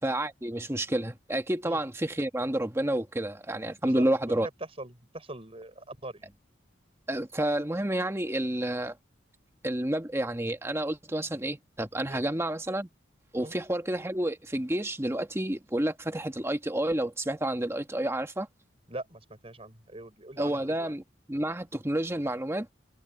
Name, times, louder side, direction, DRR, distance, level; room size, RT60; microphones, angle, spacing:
voice 1, 0.0-4.5 7.1-9.0 9.6-12.9 13.3-18.5 20.4-21.0 21.3-22.7, right 1 dB, 15° right, 1.2 m, -30 dB
voice 2, 3.8-4.5 4.8-6.3 12.1-12.2 13.4-13.5 18.9-20.9, right 2 dB, 30° right, 5.9 m, -42 dB
head